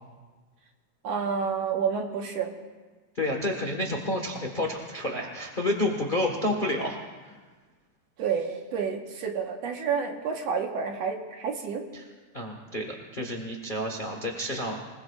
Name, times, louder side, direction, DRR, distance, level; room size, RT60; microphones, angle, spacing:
voice 1, 1.0-2.5 8.2-11.8, right 6 dB, 65° right, 2 dB, 2.2 m, -29 dB
voice 2, 3.1-7.3 11.9-12.0 12.3-14.8, left 1 dB, 85° left, 1 dB, 0.4 m, -30 dB
26.0 x 20.0 x 2.4 m, 1.4 s
omnidirectional pair, 3.6 m